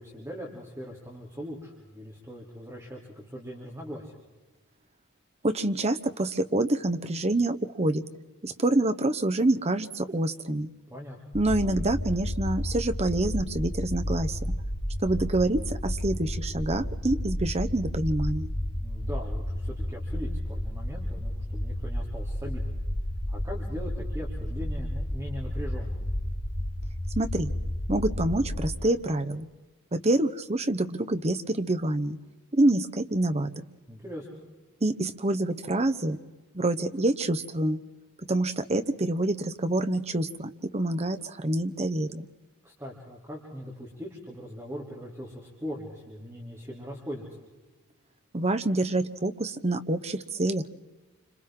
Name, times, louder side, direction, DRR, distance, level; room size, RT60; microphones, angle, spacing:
voice 1, 0.0-4.2 10.9-11.4 18.8-22.8 23.3-26.1 33.9-34.4 42.6-47.2, equal, 15° right, -4 dB, 3.2 m, -40 dB
voice 2, 5.4-8.0 8.4-10.7 11.3-14.6 15.0-18.5 27.2-27.5 27.9-29.5 29.9-32.2 32.5-33.5 34.8-36.2 36.5-37.8 38.3-42.3 48.3-50.7, right 2 dB, 30° right, 10 dB, 0.9 m, -27 dB
sound 1, 11.3-28.8, left 1 dB, 25° left, 1.3 m, -32 dB
28.5 x 26.5 x 3.8 m, 1.2 s
head